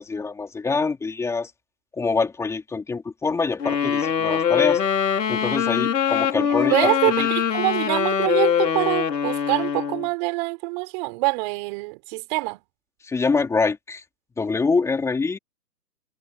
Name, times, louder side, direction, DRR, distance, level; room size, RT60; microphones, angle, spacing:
voice 1, 0.0-1.5 1.9-4.8 5.3-6.9 7.2-7.3 13.0-14.0 14.4-15.4, left 4 dB, 5° left, 3.4 m, -25 dB
Wind instrument woodwind instrument, 3.6-10.1, left 8 dB, 85° left, 3.7 m, -23 dB
voice 2, 6.4-12.6, right 28 dB, 30° right, 5.0 m, -25 dB
hypercardioid pair, 155°, 49 cm